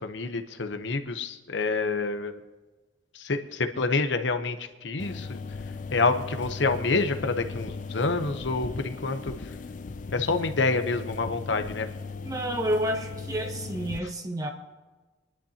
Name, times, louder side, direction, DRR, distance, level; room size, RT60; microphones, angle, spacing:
voice 1, 0.0-2.4 3.1-5.4 5.9-9.5 10.1-11.9, left 3 dB, 70° left, 8 dB, 0.9 m, -28 dB
sound 1, 5.0-14.0, left 4 dB, 45° left, 0.4 m, -37 dB
voice 2, 12.2-14.5, right 1 dB, 20° right, 4 dB, 1.1 m, -29 dB
27.5 x 11.0 x 2.9 m, 1.3 s
head